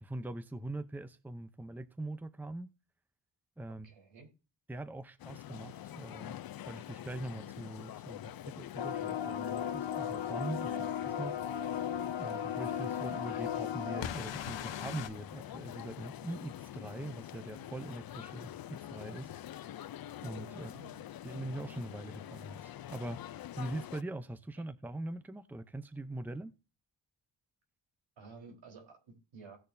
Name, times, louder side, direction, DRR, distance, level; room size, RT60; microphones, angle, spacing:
voice 1, 0.0-2.7 3.6-3.9 4.7-6.4 6.7-10.7 11.2-11.3 12.2-19.3 20.2-20.7 21.2-26.5, right 2 dB, 5° right, 0.7 m, -42 dB
voice 2, 3.8-4.3 10.7-10.9 20.5-21.0 28.2-29.6, right 4 dB, 90° right, 4.2 m, -53 dB
sound 1, 5.2-24.0, left 12 dB, 55° left, 0.5 m, -46 dB
sound 2, 8.8-15.1, left 9 dB, 80° left, 1.0 m, -36 dB
17.5 x 6.4 x 2.7 m
wide cardioid pair, 115°, 44 cm